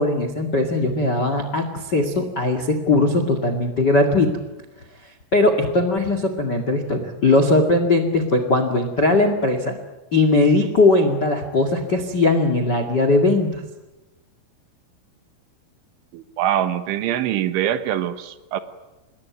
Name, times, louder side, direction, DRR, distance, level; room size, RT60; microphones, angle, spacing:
voice 1, 0.0-4.3 5.3-9.8 10.1-13.5, left 2 dB, 65° left, 8 dB, 1.0 m, -19 dB
voice 2, 16.1-18.6, right 11 dB, 75° right, 11 dB, 3.4 m, -23 dB
27.0 x 21.0 x 9.6 m, 1.1 s
omnidirectional pair, 5.9 m